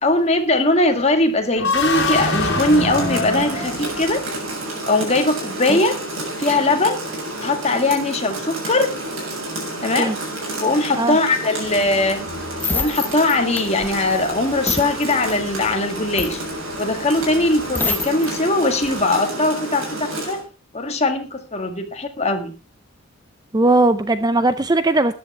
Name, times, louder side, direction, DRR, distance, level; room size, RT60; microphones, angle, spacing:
voice 1, 0.0-4.2 4.9-6.0 6.4-7.0 7.4-8.9 9.8-10.1 10.6-12.2 12.7-16.4 16.8-19.9 20.3-20.4 20.7-22.5, left 2 dB, 30° left, 5 dB, 2.0 m, -20 dB
sound 1, 1.5-4.5, left 2 dB, 55° left, 4.3 m, -23 dB
Rain, 1.7-20.4, right 1 dB, 65° right, 7.4 m, -30 dB
sound 2, 11.7-18.3 18.7-19.0, left 3 dB, 10° left, 0.9 m, -28 dB
voice 2, 23.5-25.1, right 2 dB, 20° right, 12 dB, 0.5 m, -18 dB
13.5 x 10.5 x 4.4 m, 0.34 s
head